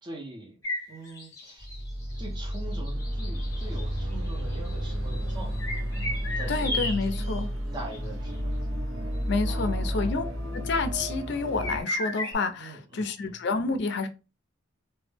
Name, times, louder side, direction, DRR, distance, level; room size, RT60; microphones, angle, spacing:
voice 1, 0.0-0.6 0.9-1.6 2.2-5.7 6.4-6.9 7.7-8.5 9.5-10.3 12.6-13.4, right 1 dB, 20° right, 0.5 m, -42 dB
sound 1, 0.6-7.4 7.8-8.0 8.3-8.4 9.6-9.7 11.6-12.3, left 1 dB, 15° left, 0.7 m, -35 dB
sound 2, 1.6-11.8, equal, 60° right, 0.8 m, -32 dB
sound 3, 3.4-6.4, right 2 dB, 90° right, 1.1 m, -41 dB
voice 2, 6.5-7.5 9.3-10.2 10.5-14.1, left 3 dB, 55° left, 0.4 m, -29 dB
2.1 x 2.0 x 3.2 m
head